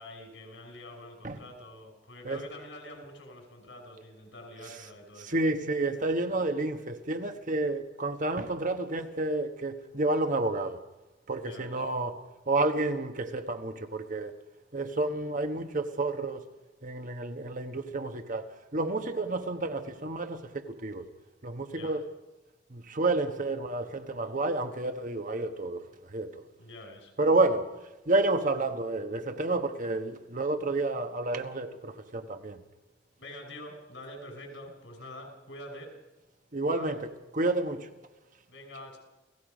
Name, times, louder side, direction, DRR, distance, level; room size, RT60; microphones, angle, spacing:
voice 1, 0.0-5.4 11.4-11.8 21.7-22.0 26.6-27.1 33.2-36.0 36.7-37.0 38.5-39.0, left 1 dB, 90° left, 5.7 m, -46 dB
voice 2, 5.2-10.8 11.3-14.3 14.7-16.4 16.8-21.0 21.4-22.0 22.7-25.8 26.1-26.3 27.2-27.7 28.1-32.6 36.5-37.9, right 2 dB, 45° right, 1.3 m, -30 dB
29.0 x 17.0 x 5.2 m
head